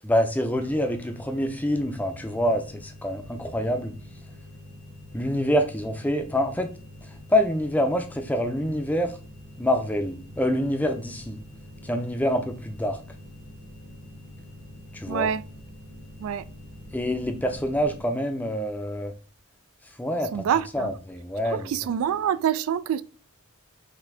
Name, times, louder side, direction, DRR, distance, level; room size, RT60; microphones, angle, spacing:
voice 1, 0.0-3.9 5.1-6.7 7.0-9.2 9.6-11.4 11.8-13.0 14.9-15.3 16.9-19.1 20.0-20.4 20.7-21.7, equal, 5° left, 0.4 m, -26 dB
sound 1, 0.5-18.0, left 1 dB, 45° right, 1.2 m, -45 dB
voice 2, 15.1-15.4 16.2-16.4 20.3-20.9 21.5-23.0, right 8 dB, 70° right, 0.3 m, -26 dB
5.9 x 2.7 x 3.3 m
head